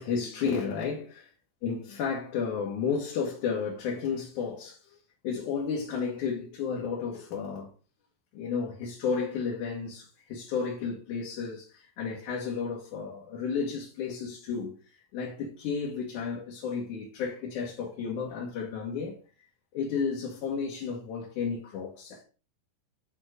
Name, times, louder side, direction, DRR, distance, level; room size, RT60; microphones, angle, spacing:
voice 1, 0.0-1.3 1.6-5.0 5.2-7.7 8.3-14.8 15.1-19.2 19.7-22.2, left 6 dB, 60° left, 2.8 m, -32 dB
9.2 x 3.8 x 4.9 m
omnidirectional pair, 4.2 m